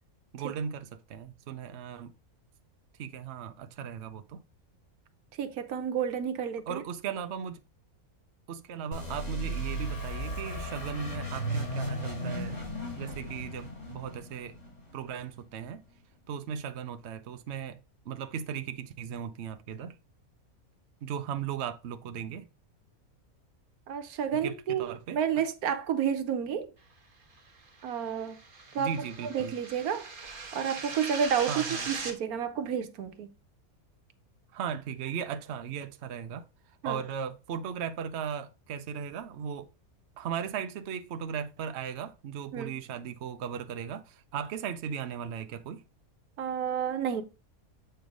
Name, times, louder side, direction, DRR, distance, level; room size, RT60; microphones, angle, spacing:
voice 1, 0.3-2.1 3.0-4.4 6.7-7.6 8.5-12.6 12.9-14.6 14.9-15.8 16.3-17.8 18.1-19.9 21.0-22.5 24.3-25.2 28.8-29.5 31.5-31.9 34.5-36.5 36.8-39.7 40.2-45.8, right 7 dB, 60° right, 0.8 m, -37 dB
voice 2, 5.4-6.8 23.9-24.8 25.1-26.7 27.8-28.4 28.7-28.9 29.2-30.1 30.5-33.3 36.8-37.0 42.5-42.8 46.4-47.2, right 8 dB, 85° right, 1.3 m, -30 dB
sound 1, 8.9-15.5, right 1 dB, 40° left, 2.8 m, -36 dB
sound 2, 27.7-32.1, right 4 dB, 40° right, 1.2 m, -40 dB
7.9 x 3.3 x 5.1 m
omnidirectional pair, 1.5 m